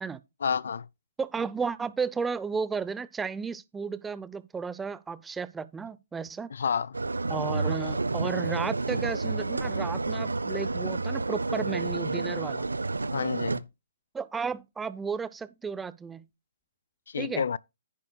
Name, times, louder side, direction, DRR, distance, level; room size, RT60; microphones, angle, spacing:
voice 1, 0.4-0.9 6.5-7.0 13.1-13.6 17.1-17.6, left 6 dB, 65° left, 0.4 m, -29 dB
voice 2, 1.2-6.5 7.3-12.7 14.1-16.2 17.2-17.4, right 5 dB, 10° right, 0.6 m, -33 dB
sound 1, 6.9-13.6, right 3 dB, 85° right, 0.6 m, -30 dB
10.5 x 9.5 x 2.3 m
figure-of-eight pair, 130°, 0 cm